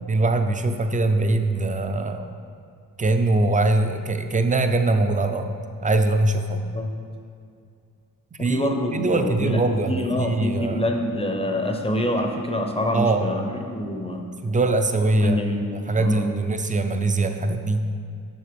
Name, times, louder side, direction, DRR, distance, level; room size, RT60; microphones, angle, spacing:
voice 1, 0.0-2.3 3.0-5.5 5.8-6.6 8.4-10.9 12.9-13.3 14.1-15.4 15.7-17.9, right 2 dB, 25° right, 7 dB, 0.4 m, -22 dB
voice 2, 8.4-14.3 15.2-15.7 16.0-16.3, left 1 dB, 15° left, 3 dB, 0.6 m, -26 dB
7.8 x 6.5 x 5.1 m, 2.4 s
wide cardioid pair, 165°, 35 cm